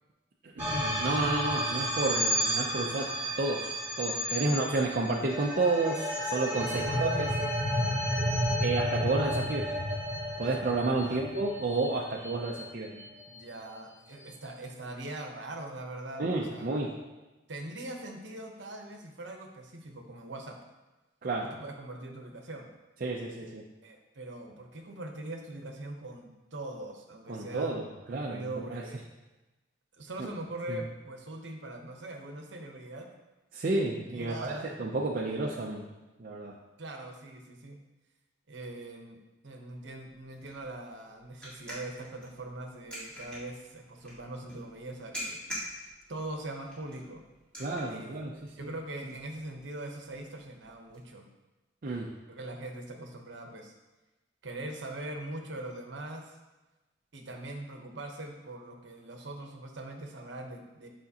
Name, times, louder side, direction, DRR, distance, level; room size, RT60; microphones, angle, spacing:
voice 1, 0.4-3.1 3.4-7.3 8.6-9.7 10.4-13.0 16.2-16.9 21.2-21.5 23.0-23.6 27.3-28.8 30.7-30.8 33.5-34.5 34.8-35.8 36.2-36.5 47.6-48.4 51.8-52.1, right 2 dB, 45° right, -2 dB, 0.5 m, -31 dB
sound 1, 0.6-13.0, equal, 10° right, 1.8 m, -32 dB
voice 2, 2.7-3.3 4.3-5.0 6.6-7.5 10.8-11.2 13.3-16.7 17.5-20.6 21.4-22.7 23.8-27.7 28.1-29.0 30.0-33.1 33.9-34.7 36.8-37.8 38.5-47.2 47.9-51.3 52.3-53.7 54.4-56.4 57.1-60.9, right 2 dB, 70° right, 3 dB, 0.9 m, -42 dB
sound 2, 39.7-51.0, equal, 5° left, 1.7 m, -46 dB
8.2 x 5.0 x 2.8 m, 1.1 s
head